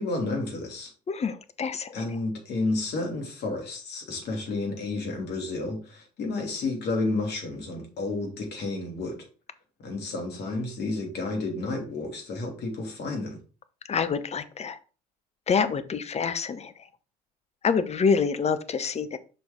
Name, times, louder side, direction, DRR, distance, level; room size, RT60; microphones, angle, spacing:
voice 1, 0.0-0.9 1.9-9.1 9.8-13.4, left 2 dB, 55° left, 3.0 m, -31 dB
voice 2, 1.1-2.0 13.9-14.8 15.5-16.7 17.6-19.2, left 5 dB, 30° left, 0.9 m, -26 dB
6.0 x 5.4 x 3.7 m
hypercardioid pair, 65°, 20 cm